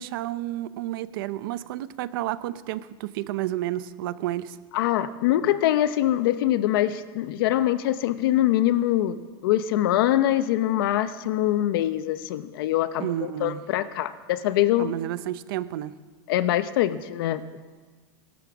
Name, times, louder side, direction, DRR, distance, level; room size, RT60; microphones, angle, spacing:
voice 1, 0.0-4.6 13.0-13.6 14.8-15.9, right 14 dB, 60° right, 15 dB, 0.8 m, -31 dB
voice 2, 4.7-14.9 16.3-17.4, left 13 dB, 65° left, 12 dB, 0.8 m, -24 dB
18.0 x 12.0 x 6.2 m, 1.4 s
supercardioid pair, 160°, 13 cm